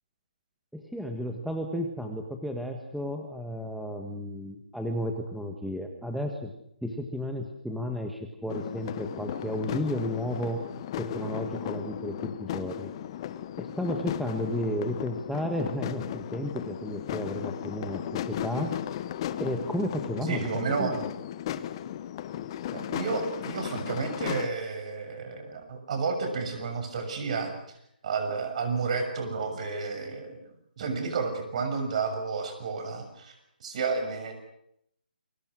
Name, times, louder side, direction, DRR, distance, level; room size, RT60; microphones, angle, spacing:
voice 1, 0.7-6.5 6.8-10.6 11.0-12.9 13.6-18.7 19.4-20.5 20.8-21.0, equal, ahead, 3 dB, 1.5 m, -33 dB
sound 1, 8.5-24.5, left 11 dB, 30° left, 1.2 m, -36 dB
voice 2, 20.3-21.0 22.7-27.5 28.0-30.4 30.8-33.3 33.6-34.3, right 4 dB, 45° right, 7 dB, 6.7 m, -31 dB
28.5 x 23.0 x 6.3 m, 0.75 s
hypercardioid pair, 160°, 5 cm